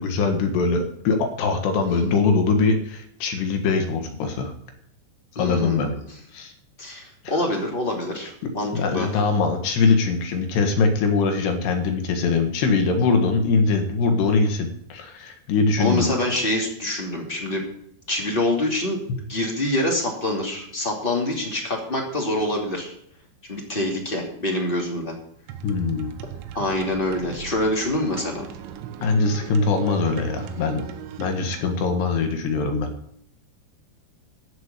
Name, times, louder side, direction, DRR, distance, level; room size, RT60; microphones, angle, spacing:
voice 1, 0.0-4.5 5.3-5.9 6.3-6.5 8.7-16.1 19.1-19.2 25.6-26.1 29.0-30.9 31.2-32.9, left 4 dB, 70° left, 5 dB, 3.7 m, -22 dB
voice 2, 5.4-5.8 6.8-9.1 15.8-17.6 18.1-19.0 19.3-22.9 23.5-25.1 26.5-28.5, left 1 dB, 20° left, 0 dB, 1.7 m, -25 dB
sound 1, 25.5-31.8, right 9 dB, 90° right, 3.5 m, -38 dB
13.5 x 6.7 x 8.4 m, 0.70 s
omnidirectional pair, 5.1 m